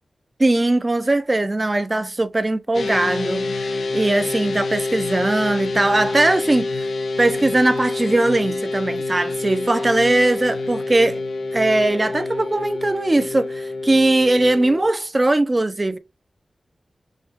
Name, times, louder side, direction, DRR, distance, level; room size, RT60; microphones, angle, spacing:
voice 1, 0.4-6.7 7.2-11.2 11.5-16.0, right 2 dB, 25° right, 0.5 m, -20 dB
sound 1, 2.7-14.9, left 3 dB, 90° left, 0.5 m, -27 dB
6.3 x 2.3 x 3.0 m
wide cardioid pair, 105°, 0 cm